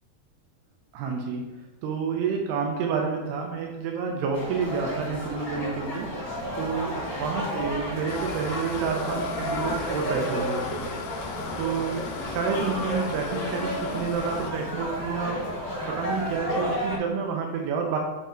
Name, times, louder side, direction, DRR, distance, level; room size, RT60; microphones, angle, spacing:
voice 1, 0.9-1.4 1.8-6.1 6.6-10.8 11.6-15.4 15.9-18.0, right 5 dB, 85° right, 1 dB, 2.9 m, -29 dB
sound 1, 4.3-17.0, equal, 40° left, 1.5 m, -32 dB
sound 2, 8.1-14.5, left 7 dB, 80° left, 2.5 m, -39 dB
6.1 x 5.4 x 3.8 m, 1.0 s
omnidirectional pair, 4.6 m